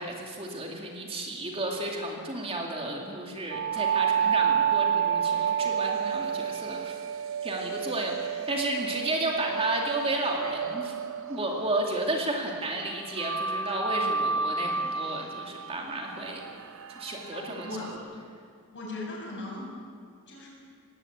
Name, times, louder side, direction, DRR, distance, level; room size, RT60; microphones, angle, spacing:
voice 1, 0.0-6.9 7.4-11.0 11.3-16.4 16.9-17.7, right 2 dB, 25° right, 0 dB, 2.5 m, -32 dB
sound 1, 3.5-12.3 13.2-17.9, right 7 dB, 65° right, 0.9 m, -30 dB
voice 2, 17.0-17.9 18.7-19.7 20.3-20.5, left 2 dB, 55° left, -2 dB, 7.2 m, -38 dB
19.0 x 16.5 x 8.7 m, 2.2 s
head